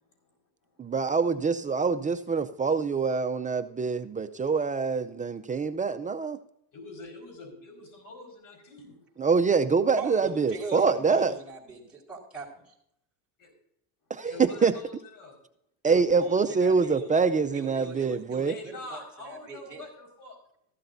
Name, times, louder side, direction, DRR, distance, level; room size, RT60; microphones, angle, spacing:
voice 1, 0.8-6.4 9.2-11.3 14.1-14.7 15.8-18.5, right 5 dB, 20° right, 9 dB, 0.5 m, -25 dB
voice 2, 6.7-9.0 14.3-15.4 18.4-20.4, left 2 dB, 45° left, 4 dB, 5.0 m, -44 dB
voice 3, 9.9-12.7 15.8-17.1 17.5-19.8, right 4 dB, ahead, -6 dB, 4.4 m, -40 dB
14.5 x 12.5 x 2.6 m, 0.72 s
supercardioid pair, 110°, 44 cm